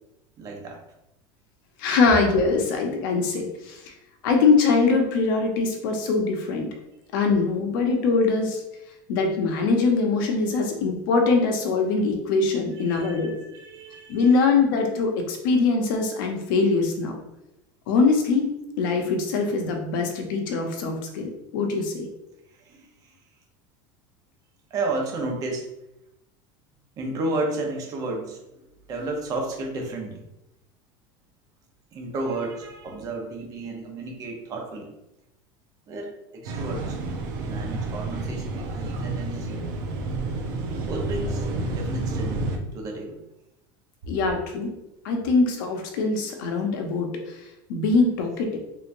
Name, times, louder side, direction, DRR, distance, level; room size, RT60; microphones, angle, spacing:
voice 1, 0.4-0.8 12.7-14.4 22.5-23.1 24.7-25.7 27.0-28.4 28.9-30.2 31.9-34.9 35.9-37.0 37.4-39.7 40.8-43.2, right 2 dB, 35° right, 1 dB, 0.8 m, -32 dB
voice 2, 1.8-3.9 4.2-6.7 7.1-8.6 9.1-13.3 14.1-17.1 17.9-18.5 18.8-22.1 44.1-44.7 45.0-48.6, left 4 dB, 85° left, 3 dB, 0.8 m, -23 dB
sound 1, 36.4-42.6, right 2 dB, 75° right, 0.7 m, -30 dB
3.4 x 2.9 x 2.6 m, 0.90 s
cardioid pair, 155°, 11 cm